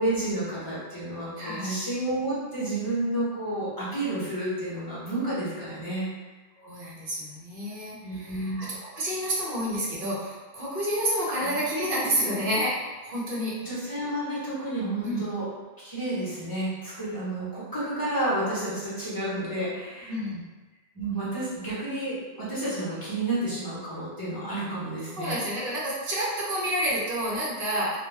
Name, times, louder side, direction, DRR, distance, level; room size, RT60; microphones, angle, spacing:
voice 1, 0.0-6.1 8.0-8.6 11.3-11.6 13.6-15.5 15.8-20.2 20.9-25.4, right 1 dB, 25° left, -9 dB, 0.9 m, -30 dB
voice 2, 1.4-1.7 6.6-13.6 15.0-15.2 20.1-20.5 25.2-28.0, equal, 60° right, -6 dB, 0.9 m, -29 dB
2.4 x 2.2 x 3.2 m, 1.2 s
omnidirectional pair, 1.0 m